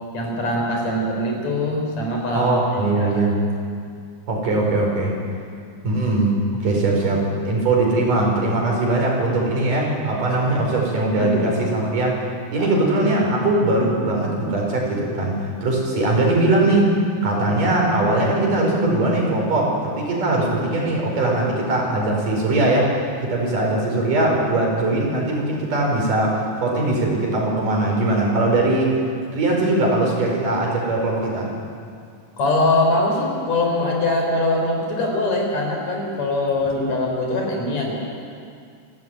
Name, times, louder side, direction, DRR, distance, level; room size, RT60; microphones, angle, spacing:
voice 1, 0.1-3.2 11.2-11.3 12.6-12.7 20.3-20.5 32.4-38.0, left 2 dB, 55° left, 0 dB, 5.3 m, -22 dB
voice 2, 2.3-3.3 4.3-5.1 5.8-6.3 6.6-12.2 12.5-16.9 17.2-22.9 23.2-29.0 29.3-31.5, right 2 dB, 80° right, -1 dB, 6.4 m, -20 dB
27.5 x 13.0 x 9.2 m, 2.3 s
omnidirectional pair, 3.7 m